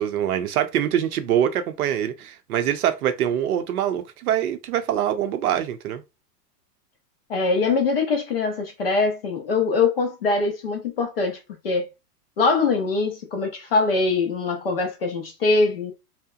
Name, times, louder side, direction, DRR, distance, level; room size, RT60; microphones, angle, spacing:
voice 1, 0.0-6.0, right 10 dB, 65° right, 0.6 m, -24 dB
voice 2, 7.3-11.4 11.6-11.9 12.4-15.9, left 3 dB, 40° left, 0.4 m, -23 dB
2.7 x 2.1 x 2.3 m
supercardioid pair, 170°, 49 cm